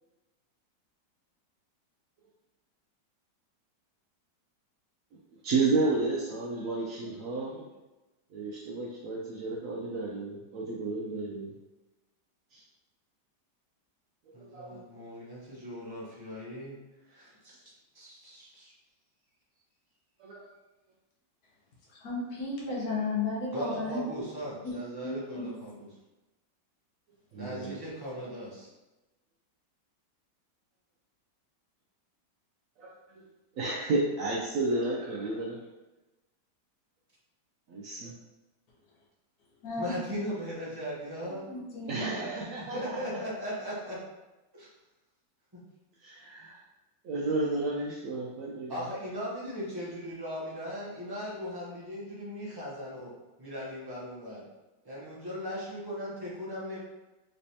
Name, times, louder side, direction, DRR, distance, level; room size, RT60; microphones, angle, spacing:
voice 1, 5.4-7.6 8.3-11.5 12.5-12.6 14.3-14.8 20.2-20.4 27.3-27.7 32.8-32.9 33.6-35.6 37.7-38.1 41.9-43.0 46.0-46.6 47.0-48.8, right 3 dB, 75° right, -3 dB, 0.7 m, -32 dB
voice 2, 14.3-16.8 17.1-18.7 23.5-25.9 27.3-28.7 39.8-41.4 41.9-42.3 42.6-44.0 44.6-44.7 45.5-45.6 48.7-53.1 53.4-54.4 54.8-56.8, equal, 30° right, -7 dB, 0.4 m, -38 dB
voice 3, 21.9-24.1 24.6-24.7 25.0-25.5 27.6-27.8 39.6-39.9 41.5-42.1, left 3 dB, 65° left, -4 dB, 1.3 m, -34 dB
3.3 x 3.2 x 2.7 m, 1.1 s
omnidirectional pair, 1.9 m